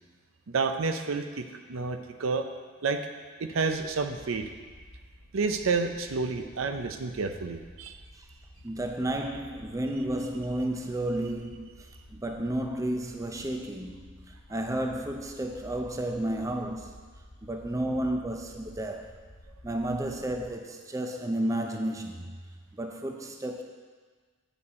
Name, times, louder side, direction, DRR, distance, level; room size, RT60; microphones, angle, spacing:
voice 1, 0.5-2.4 2.8-3.0 3.4-4.5 5.3-8.0, right 4 dB, 65° right, 7 dB, 0.6 m, -30 dB
sound 1, 3.7-20.5, equal, 80° left, 1.6 m, -52 dB
voice 2, 8.6-11.8 12.1-17.0 17.4-19.1 19.6-22.4 22.8-23.6, right 1 dB, 15° right, 4 dB, 0.5 m, -32 dB
8.7 x 7.1 x 4.2 m, 1.5 s
head